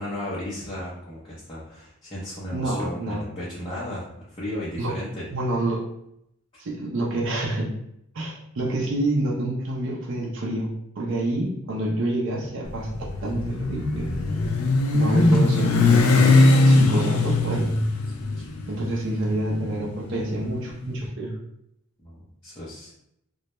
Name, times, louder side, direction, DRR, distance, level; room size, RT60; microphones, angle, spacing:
voice 1, 0.0-5.3 18.1-18.5 22.0-22.9, left 1 dB, 25° left, -9 dB, 0.6 m, -35 dB
voice 2, 2.5-3.2 4.8-4.9 5.3-5.8 6.6-7.7 8.1-12.9 13.2-14.1 14.9-16.3 16.7-17.7 18.7-21.3, right 1 dB, 60° right, -3 dB, 0.5 m, -27 dB
Motorcycle, 12.7-20.9, left 2 dB, 85° left, 0.4 m, -20 dB
2.2 x 2.0 x 2.9 m, 0.77 s
head